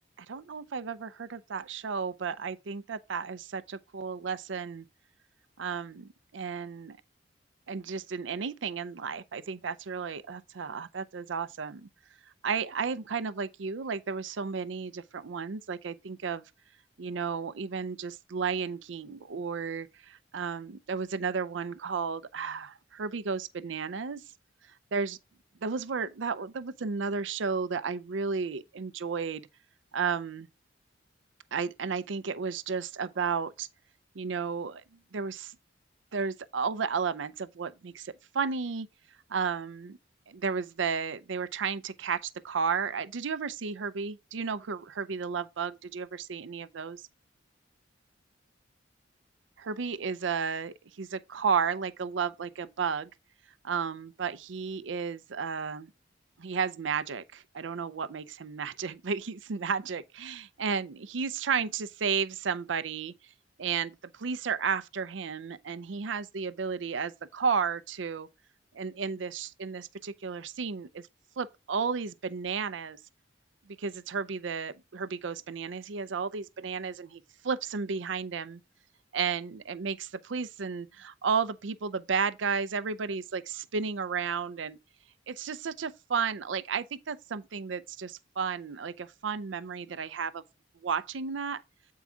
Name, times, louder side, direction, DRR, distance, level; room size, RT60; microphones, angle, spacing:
voice 1, 0.2-4.9 5.6-7.0 7.7-11.9 12.4-16.5 17.0-24.2 24.9-25.2 25.6-29.5 29.9-30.5 31.5-33.7 34.1-34.8 35.1-35.6 36.1-38.9 39.3-40.0 40.3-47.1 49.6-53.1 53.6-55.9 56.4-63.1 63.6-68.3 68.7-71.1 71.4-73.0 73.8-78.6 79.1-84.8 85.3-90.4 90.8-91.6, right 5 dB, 70° right, 0.5 m, -33 dB
8.3 x 4.7 x 3.6 m
head